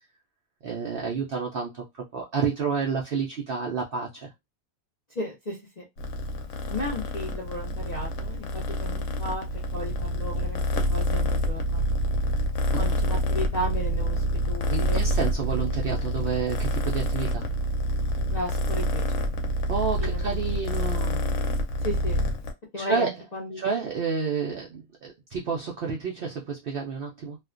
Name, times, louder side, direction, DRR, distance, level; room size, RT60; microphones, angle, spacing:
voice 1, 0.6-1.8 2.1-4.3 14.7-17.5 19.7-21.3 22.8-23.1 23.5-27.4, right 5 dB, 70° right, 0.5 m, -30 dB
voice 2, 5.2-5.8 6.7-9.5 9.7-10.6 10.9-11.9 12.8-15.0 18.3-19.3 20.0-20.3 21.8-22.2 22.7-23.6, left 1 dB, 50° left, 0.5 m, -34 dB
Purr, 6.0-22.5, equal, 70° left, 0.9 m, -27 dB
2.4 x 2.1 x 2.4 m
omnidirectional pair, 1.5 m